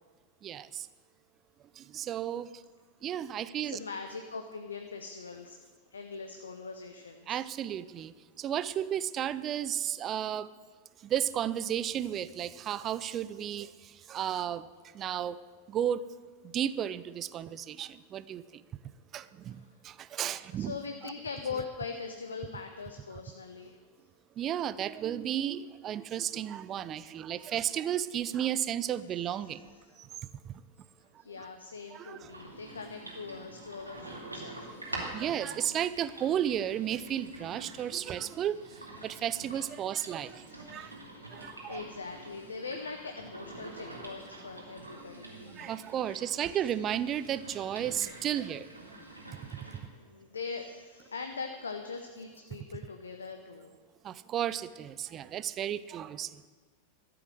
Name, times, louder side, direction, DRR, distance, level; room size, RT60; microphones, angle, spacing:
voice 1, 0.4-0.9 1.8-2.6 3.0-3.8 7.3-10.5 11.0-14.7 14.9-15.4 15.7-16.0 16.4-18.6 19.1-20.8 21.0-21.1 23.1-23.2 24.4-29.7 30.0-30.6 31.4-31.5 31.9-32.3 34.9-40.9 41.3-41.8 45.6-48.7 49.3-49.8 54.0-56.4, right 10 dB, 30° right, 17 dB, 0.5 m, -34 dB
voice 2, 3.6-5.6 5.9-7.4 19.5-19.7 20.5-23.8 27.4-27.5 29.4-29.6 31.2-35.0 40.5-40.9 41.3-41.4 41.7-45.6 49.7-53.7, left 4 dB, 75° left, 5 dB, 0.8 m, -42 dB
sound 1, 32.3-49.8, right 2 dB, 85° right, 2.4 m, -46 dB
13.0 x 7.8 x 7.8 m, 1.5 s
figure-of-eight pair, 90°, 0 cm